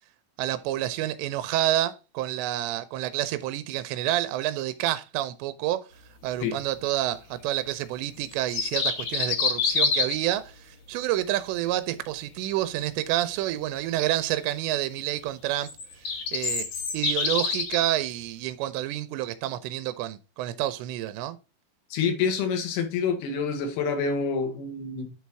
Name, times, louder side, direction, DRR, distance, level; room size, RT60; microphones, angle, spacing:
voice 1, 0.4-5.8 6.2-15.7 16.3-16.7 16.9-21.4, right 14 dB, 90° right, 2.8 m, -28 dB
sound 1, 8.3-10.3 15.7-17.8, left 5 dB, 55° left, 1.9 m, -26 dB
voice 2, 21.9-25.1, left 5 dB, 70° left, 3.3 m, -27 dB
9.6 x 4.2 x 4.6 m
omnidirectional pair, 4.9 m